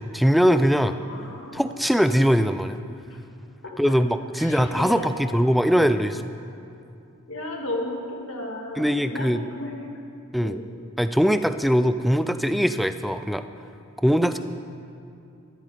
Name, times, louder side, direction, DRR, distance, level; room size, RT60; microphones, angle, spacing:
voice 1, 0.0-1.0 1.5-2.8 3.8-6.2 8.8-9.4 10.3-10.6 11.0-13.4 14.0-14.4, equal, ahead, 10 dB, 0.3 m, -21 dB
voice 2, 0.8-1.6 3.1-3.2 3.6-3.9 4.4-5.4 7.3-9.9 10.4-10.7, left 1 dB, 60° left, 0 dB, 2.1 m, -34 dB
13.5 x 13.5 x 5.0 m, 2.6 s
head